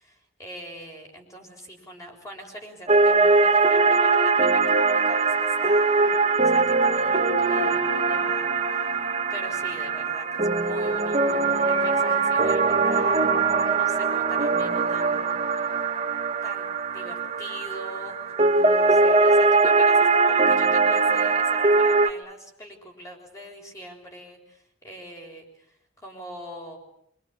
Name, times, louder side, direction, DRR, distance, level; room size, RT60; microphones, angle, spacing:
voice 1, 0.0-9.0 9.3-15.3 15.7-15.8 16.4-18.2 18.8-26.8, equal, 15° left, 2 dB, 6.5 m, -42 dB
sound 1, 2.9-22.1, right 4 dB, 30° right, 1.9 m, -21 dB
26.0 x 26.0 x 8.8 m, 0.73 s
head